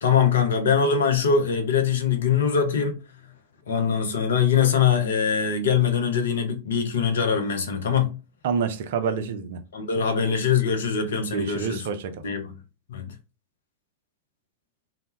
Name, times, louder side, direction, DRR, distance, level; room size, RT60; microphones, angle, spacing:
voice 1, 0.0-3.0 3.7-8.1 9.7-11.9 12.2-12.5 12.9-13.1, left 7 dB, 65° left, 0.5 m, -22 dB
voice 2, 8.4-9.6 11.3-12.2, right 6 dB, 55° right, 0.3 m, -27 dB
2.1 x 2.0 x 2.9 m
figure-of-eight pair, 90°, 0 cm